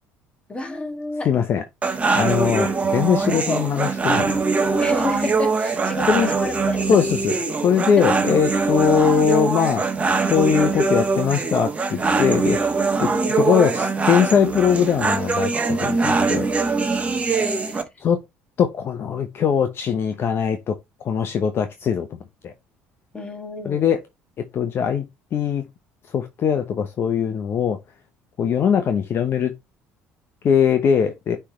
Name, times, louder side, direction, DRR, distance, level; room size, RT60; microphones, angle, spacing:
voice 1, 0.5-1.4 3.1-3.6 4.8-7.3 8.0-8.1 9.3-9.4 13.0-13.5 17.2-17.8 23.1-23.9, left 2 dB, 20° left, 1.8 m, -30 dB
voice 2, 1.3-1.6 2.1-4.4 6.1-6.3 6.9-7.4 7.6-9.8 10.2-12.6 13.0-13.1 13.4-16.5 18.0-18.2 18.6-20.8 21.0-22.1 22.4-22.5 23.6-24.0 24.4-25.0 25.3-25.6 26.1-27.8 28.4-29.5 30.4-31.4, left 7 dB, 50° left, 0.8 m, -21 dB
sound 1, 1.8-17.8, right 4 dB, 25° right, 1.3 m, -22 dB
9.8 x 3.3 x 3.0 m
hypercardioid pair, 70°, 5 cm